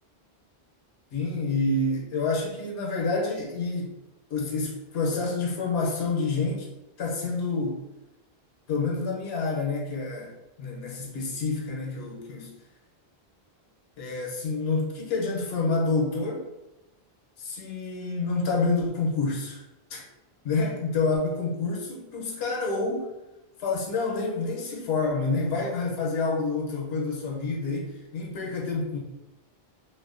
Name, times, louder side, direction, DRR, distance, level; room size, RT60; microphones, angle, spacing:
voice 1, 1.1-3.9 4.3-6.7 7.0-7.8 8.7-12.5 14.0-16.5 17.4-19.6 19.9-20.0 20.4-23.1 23.6-29.0, left 3 dB, 85° left, -1 dB, 0.9 m, -28 dB
2.5 x 2.1 x 2.3 m, 0.96 s
omnidirectional pair, 1.0 m